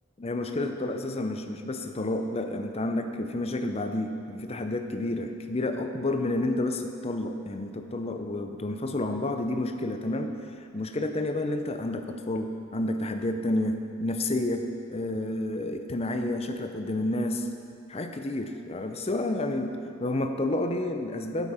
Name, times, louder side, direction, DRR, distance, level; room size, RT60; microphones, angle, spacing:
voice 1, 0.2-10.3 10.7-17.5 17.9-21.5, left 1 dB, 30° left, 6 dB, 0.6 m, -30 dB
8.9 x 8.1 x 5.6 m, 2.5 s
head